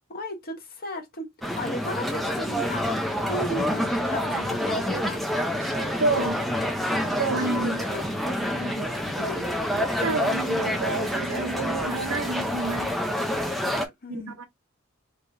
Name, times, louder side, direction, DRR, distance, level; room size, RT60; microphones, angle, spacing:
voice 1, 0.1-2.9 3.3-5.2 7.4-8.1 8.6-9.5 14.0-14.3, equal, 45° left, 1.0 m, -35 dB
sound 1, 1.4-13.9, equal, ahead, 0.5 m, -27 dB
voice 2, 5.6-6.4 7.2-7.9 8.5-8.6 9.7-13.0 13.5-13.7 14.1-14.4, right 3 dB, 70° right, 0.8 m, -30 dB
3.4 x 3.1 x 2.5 m
head